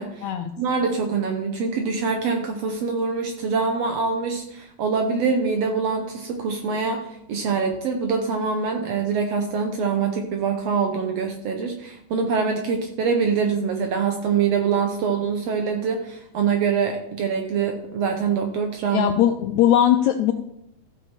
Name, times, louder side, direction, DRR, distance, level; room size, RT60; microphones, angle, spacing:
voice 1, 0.0-19.1, right 5 dB, 70° right, 4 dB, 1.6 m, -24 dB
voice 2, 18.9-20.3, left 11 dB, 80° left, 7 dB, 1.7 m, -19 dB
14.5 x 6.9 x 4.4 m, 0.79 s
omnidirectional pair, 3.8 m